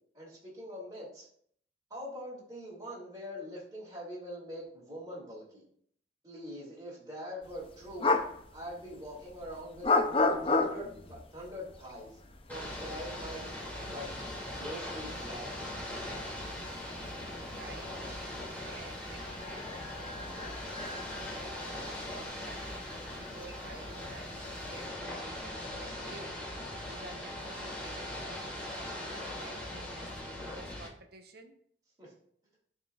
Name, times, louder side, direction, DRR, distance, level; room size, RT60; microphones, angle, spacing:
voice 1, 0.1-1.3 1.9-5.6 6.2-8.2 8.5-9.9 10.4-12.2 12.5-13.6 13.8-14.1 14.5-15.7 32.0-32.1, equal, 20° right, 2.4 m, -43 dB
sound 1, 7.4-24.9, left 3 dB, 30° left, 0.5 m, -36 dB
Ocean / Boat Water vehicle, 12.5-30.9, left 1 dB, 10° left, 2.5 m, -40 dB
voice 2, 17.0-22.7 23.1-26.5 26.8-28.6 29.0-31.6, right 2 dB, 55° right, 0.9 m, -52 dB
11.5 x 4.5 x 2.4 m
head